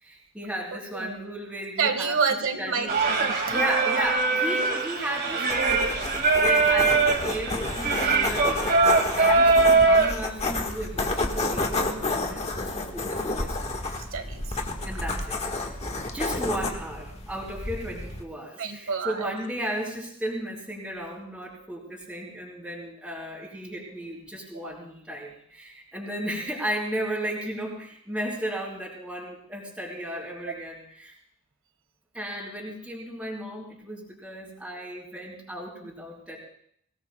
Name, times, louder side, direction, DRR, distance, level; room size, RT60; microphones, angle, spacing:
voice 1, 0.0-2.2 2.6-2.9 3.5-8.7 9.2-14.0 14.9-15.4 15.7-15.8 16.0-31.1 32.1-36.4, right 1 dB, 5° right, -6 dB, 4.0 m, -35 dB
voice 2, 0.9-1.2 1.8-3.9 14.1-15.0 18.6-19.4, right 5 dB, 65° right, 8 dB, 1.6 m, -29 dB
Singing, 2.9-10.1, right 3 dB, 45° right, 2.1 m, -22 dB
sound 1, 5.5-18.2, left 2 dB, 30° left, 1.5 m, -31 dB
24.0 x 17.5 x 2.3 m, 0.67 s
head